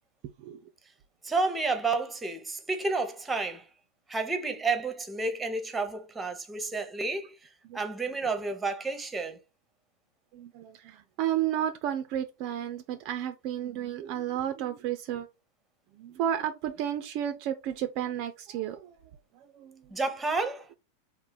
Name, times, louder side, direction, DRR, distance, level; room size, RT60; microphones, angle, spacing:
voice 1, 1.2-3.7 4.1-7.4 7.7-9.4 19.9-20.7, right 3 dB, 10° right, 0.7 m, -30 dB
voice 2, 10.3-15.3 15.9-18.9 19.3-20.0, right 10 dB, 40° right, 0.4 m, -32 dB
3.9 x 2.0 x 3.9 m
figure-of-eight pair, 90°, 0 cm